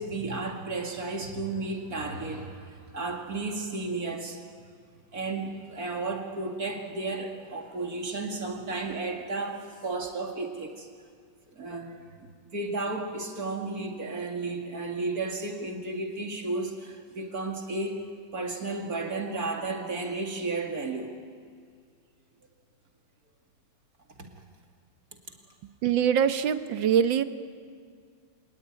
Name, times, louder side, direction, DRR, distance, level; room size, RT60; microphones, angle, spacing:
voice 1, 0.0-4.4 5.1-10.9 11.5-11.9 12.5-18.0 18.3-21.1 24.2-24.3, right 3 dB, 50° right, 2 dB, 2.9 m, -33 dB
voice 2, 25.8-27.2, right 8 dB, 75° right, 10 dB, 1.8 m, -23 dB
26.5 x 19.5 x 9.6 m, 2.1 s
omnidirectional pair, 2.1 m